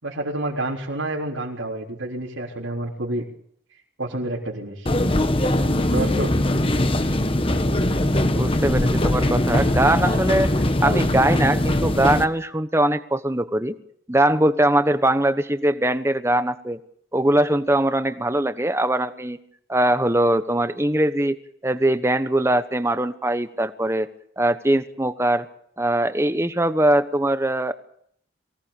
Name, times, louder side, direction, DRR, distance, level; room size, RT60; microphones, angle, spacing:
voice 1, 0.0-3.3 4.0-4.9 5.7-6.3, right 1 dB, 90° right, -3 dB, 3.9 m, -29 dB
sound 1, 4.9-12.3, left 1 dB, 30° left, 1.3 m, -21 dB
voice 2, 8.3-10.5 10.8-13.8 14.1-16.8 17.1-19.4 19.7-24.1 24.4-25.5 25.8-27.7, right 1 dB, 15° right, 11 dB, 1.1 m, -21 dB
24.0 x 18.0 x 7.2 m, 0.66 s
head